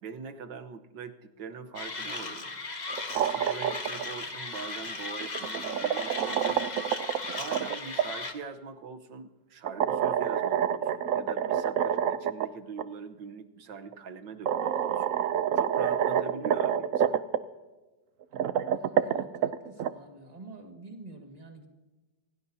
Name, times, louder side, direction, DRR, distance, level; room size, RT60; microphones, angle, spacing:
voice 1, 0.0-2.5 3.0-6.7 7.3-15.2 15.6-17.2, right 5 dB, 90° right, 7 dB, 1.7 m, -43 dB
Mechanisms, 1.7-8.3, left 3 dB, 25° left, 1.2 m, -37 dB
sound 1, 2.9-4.0 5.2-8.1 9.7-12.5 12.8-12.9 13.9-14.0 14.5-17.4 18.2-19.9, right 9 dB, 70° right, 0.7 m, -27 dB
voice 2, 18.7-21.7, right 2 dB, 20° right, 3 dB, 1.9 m, -48 dB
26.5 x 17.0 x 2.8 m, 1.2 s
omnidirectional pair, 1.9 m